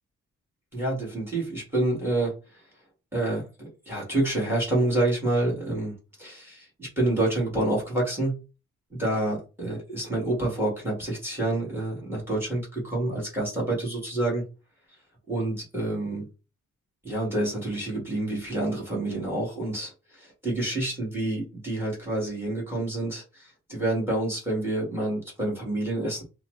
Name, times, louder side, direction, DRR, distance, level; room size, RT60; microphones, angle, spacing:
voice 1, 0.7-2.3 3.1-8.4 8.9-14.4 15.3-16.2 17.0-19.9 20.4-26.2, right 1 dB, 10° right, -3 dB, 1.5 m, -28 dB
3.1 x 2.0 x 3.0 m, 0.30 s
wide cardioid pair, 155°, 30 cm